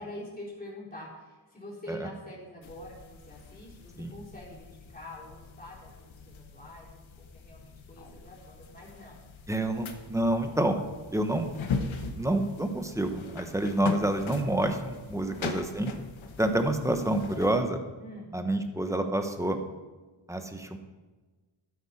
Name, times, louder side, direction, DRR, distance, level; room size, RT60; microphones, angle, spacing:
voice 1, 0.0-9.2 11.3-11.4 15.2-15.6 18.0-18.3, left 1 dB, 20° left, -6 dB, 4.0 m, -45 dB
sound 1, 2.6-17.6, left 4 dB, 70° left, 1.2 m, -40 dB
voice 2, 9.5-10.8 11.1-11.5 12.2-15.9 16.4-17.8 18.3-19.6 20.3-20.8, right 1 dB, 5° right, 6 dB, 1.1 m, -28 dB
12.5 x 9.9 x 4.3 m, 1.3 s
wide cardioid pair, 105°, 49 cm